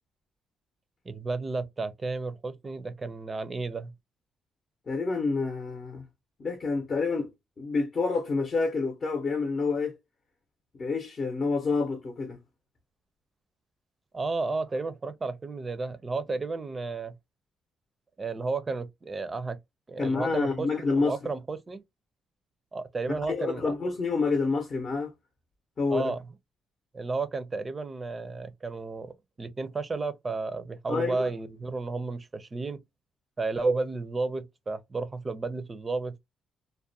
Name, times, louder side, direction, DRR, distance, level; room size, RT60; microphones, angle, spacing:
voice 1, 1.1-3.9 14.1-17.2 18.2-19.6 19.9-20.7 21.0-21.8 22.7-23.7 25.9-26.2 26.9-32.8 33.4-36.2, right 3 dB, 30° right, 0.5 m, -32 dB
voice 2, 4.9-6.1 6.4-7.3 7.6-10.0 10.7-12.4 20.0-21.2 23.1-25.1 25.8-26.1 30.9-31.3, left 4 dB, 45° left, 0.7 m, -28 dB
2.4 x 2.1 x 2.6 m
cardioid pair, 90°, 0 cm